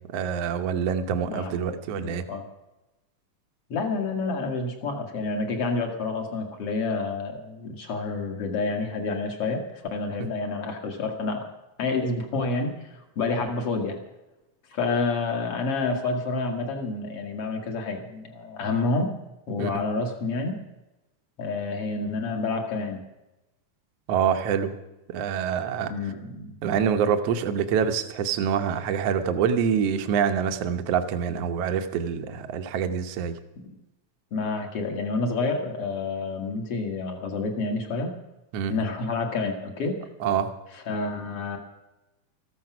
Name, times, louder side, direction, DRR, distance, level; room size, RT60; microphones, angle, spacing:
voice 1, 0.0-2.3 19.6-19.7 24.1-24.8 25.1-25.9 26.6-33.4 38.5-38.7 40.2-40.5, right 7 dB, 65° right, 9 dB, 1.8 m, -26 dB
voice 2, 1.9-2.4 3.7-11.5 11.8-14.0 14.7-19.1 19.5-20.6 21.4-23.0 25.9-26.5 33.6-33.7 34.3-38.1 38.7-40.0 40.9-41.6, left 3 dB, 50° left, 3 dB, 2.6 m, -29 dB
14.0 x 14.0 x 6.0 m, 0.99 s
omnidirectional pair, 3.7 m